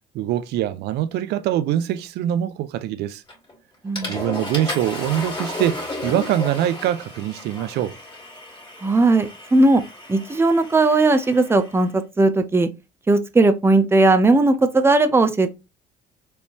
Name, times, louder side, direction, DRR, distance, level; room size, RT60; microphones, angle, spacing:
voice 1, 0.1-3.2 4.1-8.0, right 12 dB, 80° right, 0.5 m, -23 dB
Water / Toilet flush, 3.3-3.5 4.0-11.8, left 2 dB, 25° left, 2.6 m, -34 dB
voice 2, 3.8-4.2 8.8-9.8 10.1-12.7 13.1-15.5, right 2 dB, 15° right, 0.6 m, -17 dB
4.4 x 3.3 x 2.9 m
cardioid pair, 110°, 17 cm